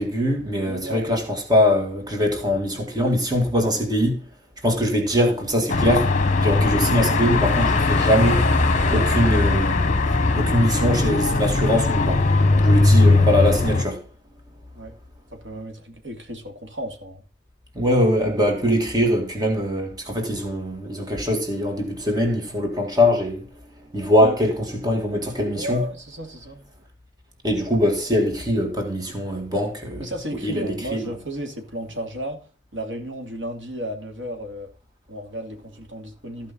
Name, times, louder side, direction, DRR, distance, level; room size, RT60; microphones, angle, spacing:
voice 1, 0.0-4.2 4.6-6.1 6.4-8.4 8.9-10.0 10.4-12.2 12.6-14.0 17.8-23.4 23.9-25.8 27.4-30.1 30.4-31.1, equal, 20° right, 2.2 m, -22 dB
voice 2, 0.6-1.0 14.7-14.9 15.3-17.2 24.2-24.4 25.5-26.7 30.0-32.4 32.7-34.7 35.1-36.5, equal, 75° right, 2.7 m, -33 dB
Car passing by / Traffic noise roadway noise / Engine, 5.7-13.8, left 3 dB, 40° left, 1.2 m, -19 dB
14.0 x 5.4 x 5.4 m
head